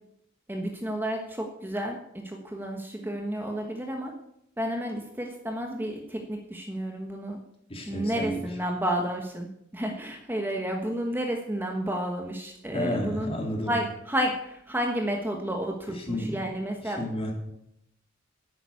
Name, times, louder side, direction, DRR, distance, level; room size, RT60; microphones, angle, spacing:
voice 1, 0.5-4.1 4.6-7.4 7.9-13.3 13.7-17.0, equal, 10° right, 2 dB, 1.3 m, -31 dB
voice 2, 7.7-8.4 12.7-13.7 15.9-16.4 16.8-17.3, equal, 30° left, 1 dB, 3.3 m, -31 dB
11.0 x 9.1 x 8.3 m, 0.78 s
head